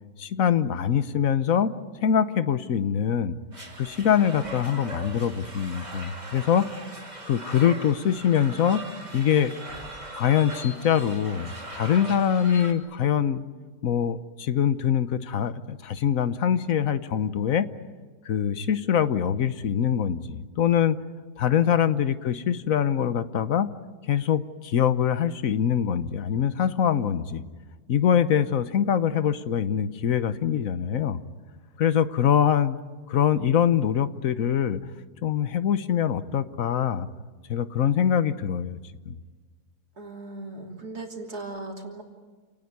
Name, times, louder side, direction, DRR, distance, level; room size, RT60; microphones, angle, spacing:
voice 1, 0.2-1.7 2.0-3.4 3.8-6.7 7.3-8.8 9.1-9.5 10.1-13.4 13.8-17.7 18.2-21.0 21.4-23.7 24.1-27.4 27.9-31.2 31.8-32.8 33.1-34.8 35.2-37.1 37.5-38.8 39.1-39.2, left 9 dB, 65° left, 13 dB, 1.3 m, -23 dB
sound 1, 3.5-12.7, right 2 dB, 25° right, 3.1 m, -40 dB
voice 2, 39.9-42.0, right 2 dB, 85° right, 1 dB, 3.6 m, -38 dB
28.5 x 19.0 x 9.5 m, 1.4 s
omnidirectional pair, 1.6 m